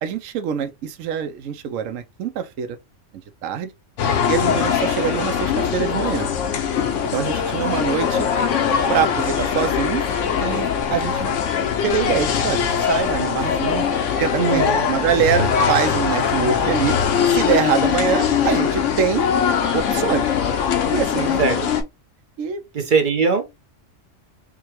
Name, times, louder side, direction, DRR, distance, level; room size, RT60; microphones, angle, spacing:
voice 1, 0.0-2.8 3.4-3.7 4.3-6.3 7.1-8.3 8.9-10.1 10.4-11.3 11.8-13.9 14.2-17.0 17.3-19.3 19.7-20.3 20.9-21.7 22.4-22.6, right 7 dB, 80° right, 1.0 m, -24 dB
sound 1, 4.0-21.8, left 7 dB, 75° left, 1.0 m, -21 dB
voice 2, 14.3-14.9 21.4-21.6 22.7-23.6, right 5 dB, 50° right, 0.7 m, -20 dB
4.9 x 2.2 x 3.0 m
omnidirectional pair, 1.3 m